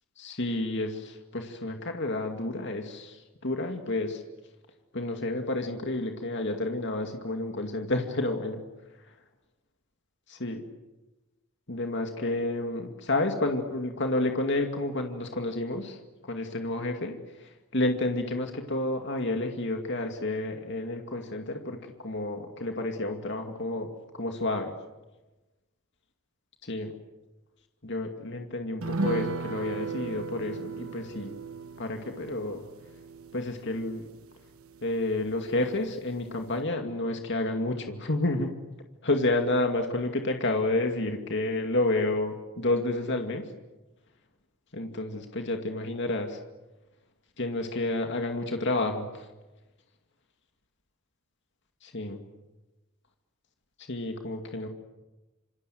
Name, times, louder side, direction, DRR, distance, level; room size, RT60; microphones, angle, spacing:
voice 1, 0.2-4.2 4.9-8.6 10.3-10.6 11.7-24.7 26.6-26.9 27.8-31.4 31.8-32.6 33.3-34.0 34.8-38.5 39.0-43.5 44.7-46.4 47.4-49.3 51.8-52.2 53.9-54.7, left 2 dB, 55° left, 4 dB, 2.4 m, -30 dB
sound 1, 28.8-35.6 35.9-36.0 36.3-36.5, right 4 dB, 85° right, 1.2 m, -36 dB
27.5 x 27.5 x 7.8 m, 1.1 s
head